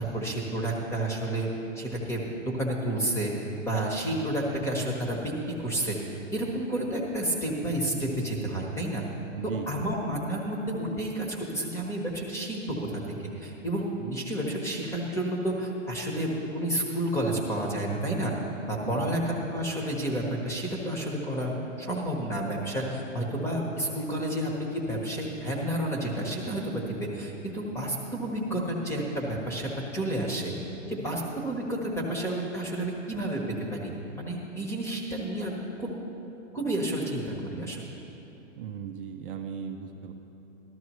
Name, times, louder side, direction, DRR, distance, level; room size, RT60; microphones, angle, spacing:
voice 1, 0.0-1.5 1.8-5.3 5.6-9.0 9.4-13.0 13.3-18.3 18.7-30.5 30.9-33.4 33.7-35.9 36.5-37.8, right 1 dB, 5° left, -1 dB, 1.1 m, -30 dB
voice 2, 9.3-9.7 18.8-19.2 38.6-40.1, right 8 dB, 45° right, 4 dB, 0.6 m, -37 dB
13.5 x 12.5 x 3.1 m, 2.9 s
hypercardioid pair, 140°, 38 cm